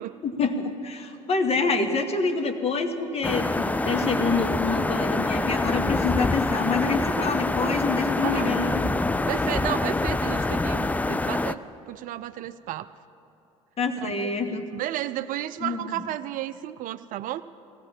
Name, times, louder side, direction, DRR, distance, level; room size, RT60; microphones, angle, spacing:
voice 1, 0.2-8.9 13.8-14.7 15.6-16.0, left 4 dB, 35° left, 6 dB, 1.4 m, -27 dB
voice 2, 1.1-2.1 4.2-4.5 8.2-8.6 9.3-11.6 11.9-12.9 14.0-17.4, right 13 dB, 50° right, 13 dB, 0.5 m, -33 dB
sound 1, 3.2-11.5, left 2 dB, 10° left, 0.4 m, -25 dB
18.0 x 16.0 x 4.4 m, 2.9 s
hypercardioid pair, 65°, 17 cm